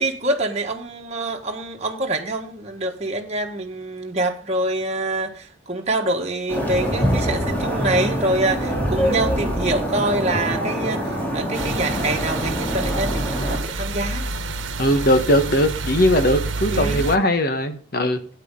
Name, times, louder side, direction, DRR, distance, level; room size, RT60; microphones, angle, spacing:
voice 1, 0.0-14.3 16.7-17.2, right 2 dB, 35° right, 1.5 m, -25 dB
sound 1, 6.5-13.6, equal, 10° left, 4.0 m, -24 dB
sound 2, 11.5-17.2, right 3 dB, 75° right, 1.2 m, -28 dB
voice 2, 14.8-18.2, equal, 50° left, 1.4 m, -19 dB
12.5 x 9.3 x 3.8 m
head